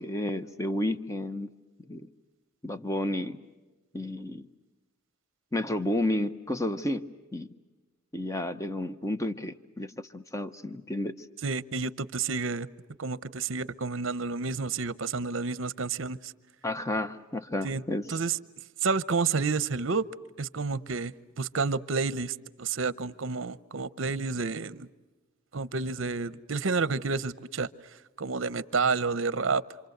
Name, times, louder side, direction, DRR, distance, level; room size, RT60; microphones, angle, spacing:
voice 1, 0.0-1.5 1.9-2.1 2.6-3.4 3.9-4.5 5.5-7.0 7.3-7.5 8.1-11.1 16.6-18.0, left 1 dB, 15° left, 11 dB, 0.9 m, -31 dB
voice 2, 11.4-12.7 13.0-16.3 17.6-17.8 18.1-18.4 18.8-20.0 20.4-24.9 25.5-27.7 28.2-29.6, right 4 dB, 60° right, 16 dB, 0.8 m, -30 dB
27.5 x 27.5 x 8.0 m, 1.2 s
head